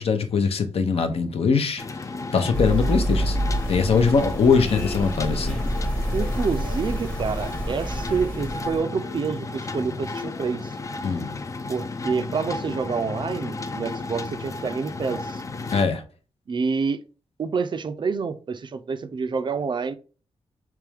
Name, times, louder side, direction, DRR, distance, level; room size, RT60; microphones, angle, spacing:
voice 1, 0.0-1.8 2.3-5.6 11.0-11.4 15.7-16.0, left 5 dB, 65° left, 0.6 m, -22 dB
sound 1, 1.8-15.8, left 3 dB, 30° left, 0.3 m, -33 dB
sound 2, 2.5-8.8, equal, 10° left, 0.8 m, -27 dB
Wind instrument woodwind instrument, 4.9-6.3 6.6-6.8 7.1-7.2 7.6-7.8 8.1-8.7 9.0-10.9, left 2 dB, 90° left, 1.3 m, -46 dB
voice 2, 6.1-10.7 11.7-15.4 16.5-17.0 17.4-20.0, right 5 dB, 45° right, 0.4 m, -28 dB
3.4 x 3.1 x 3.3 m
wide cardioid pair, 100°, 11 cm